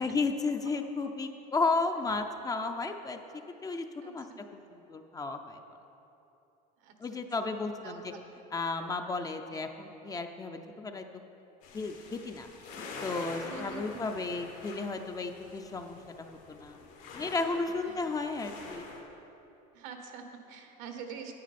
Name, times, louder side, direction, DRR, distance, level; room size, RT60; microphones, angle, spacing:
voice 1, 0.0-3.2 3.6-4.2 4.7-5.6 7.0-8.1 8.5-11.1 11.7-12.5 12.8-16.8 17.1-18.9, left 3 dB, 20° left, 6 dB, 0.5 m, -33 dB
voice 2, 4.0-4.5 6.8-7.2 7.8-8.3 9.5-9.7 13.4-14.0 17.8-18.0 19.7-21.3, right 6 dB, 75° right, 5 dB, 1.1 m, -46 dB
sound 1, 11.6-19.0, left 3 dB, 85° left, 1.9 m, -45 dB
9.3 x 9.0 x 4.2 m, 2.9 s
supercardioid pair, 120°, 19 cm